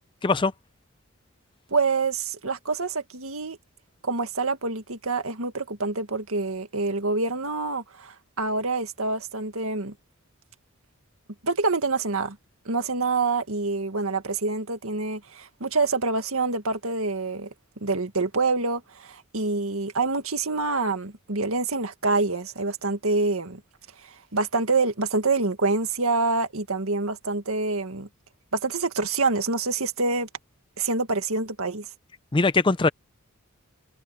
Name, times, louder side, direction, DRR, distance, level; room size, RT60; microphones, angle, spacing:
voice 1, 1.7-3.6 4.0-9.9 11.4-12.4 12.7-17.5 17.8-23.6 24.0-28.1 28.5-30.3 30.8-31.9, right 3 dB, 75° right, 2.0 m, -26 dB
voice 2, 32.3-32.9, left 3 dB, 25° left, 0.5 m, -21 dB
head